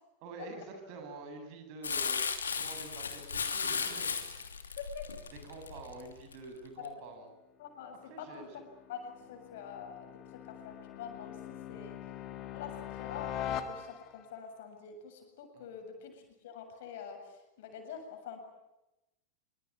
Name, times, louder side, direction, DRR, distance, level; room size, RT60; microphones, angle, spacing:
voice 1, 0.2-2.2 2.5-4.2 5.3-7.3 8.1-8.6 9.2-9.3 11.6-11.9 15.5-15.7, right 3 dB, 45° right, 6 dB, 7.9 m, -47 dB
Crumpling crinkling, 1.8-6.4 6.8-6.9, left 6 dB, 70° left, 3.0 m, -35 dB
voice 2, 4.8-5.1 6.8-6.9 7.6-12.0 12.5-18.4, left 7 dB, 55° left, 5 dB, 7.4 m, -46 dB
sound 1, 7.9-14.3, left 10 dB, 35° left, 2.6 m, -43 dB
26.5 x 25.0 x 8.9 m, 0.95 s
figure-of-eight pair, 90°, 0 cm